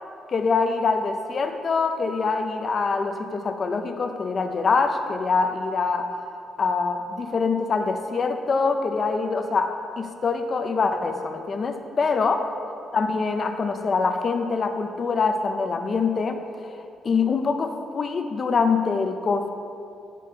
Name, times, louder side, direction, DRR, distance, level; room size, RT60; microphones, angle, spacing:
voice 1, 0.3-6.1 6.6-12.4 12.9-16.4 17.0-19.5, left 4 dB, 45° left, 6 dB, 0.4 m, -24 dB
5.2 x 4.2 x 5.0 m, 2.6 s
cardioid pair, 90°, 0 cm